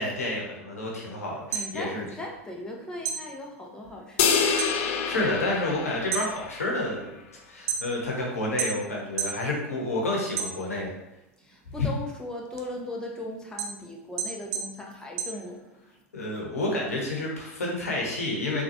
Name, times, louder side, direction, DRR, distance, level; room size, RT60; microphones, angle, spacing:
voice 1, 0.0-2.1 4.6-7.1 7.5-11.0 11.8-11.9 16.1-18.6, left 2 dB, 85° left, -2 dB, 0.9 m, -29 dB
sound 1, 1.3-2.7 3.0-4.8 5.1-5.6 6.0-8.2 8.6-9.4 9.8-11.0 11.4-16.0, right 6 dB, 45° right, 0.5 m, -33 dB
voice 2, 1.5-4.4 11.4-15.7, left 1 dB, 10° left, -1 dB, 0.7 m, -38 dB
sound 2, 4.2-6.7, left 6 dB, 60° left, 0.4 m, -27 dB
3.8 x 2.4 x 2.9 m, 0.88 s
hypercardioid pair, 85°, 8 cm